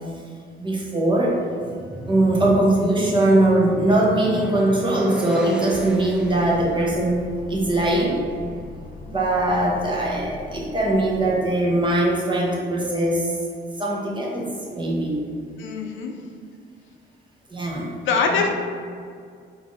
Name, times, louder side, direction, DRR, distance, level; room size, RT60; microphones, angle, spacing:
voice 1, 0.6-1.4 2.1-8.2 9.1-13.3 13.8-15.2 17.5-17.9 18.3-18.5, right 1 dB, 25° right, -3 dB, 0.9 m, -21 dB
sound 1, 1.5-6.8, equal, 5° right, 0.3 m, -36 dB
sound 2, 5.7-11.3, left 3 dB, 55° left, 0.8 m, -40 dB
voice 2, 9.5-9.9 15.6-16.1 18.1-18.5, left 5 dB, 75° left, 3 dB, 0.5 m, -24 dB
3.3 x 2.6 x 3.9 m, 2.2 s
cardioid pair, 90°, 20 cm